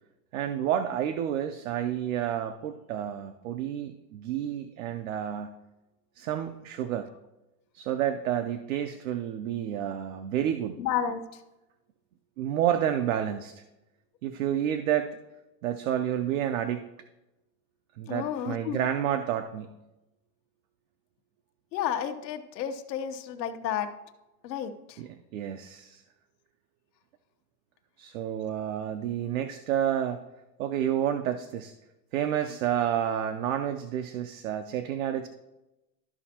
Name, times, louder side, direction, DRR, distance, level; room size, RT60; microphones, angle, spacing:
voice 1, 0.3-5.5 6.2-7.1 7.7-10.8 12.4-13.6 14.2-15.2 15.6-16.9 18.0-19.7 25.0-26.0 28.0-30.2 30.6-31.7 32.1-35.3, right 10 dB, 55° right, 7 dB, 0.6 m, -30 dB
voice 2, 10.8-11.4 18.1-18.8 21.7-23.9 24.4-25.0, left 9 dB, 80° left, 7 dB, 1.1 m, -32 dB
13.5 x 5.2 x 2.8 m, 0.97 s
supercardioid pair, 170°, 50 cm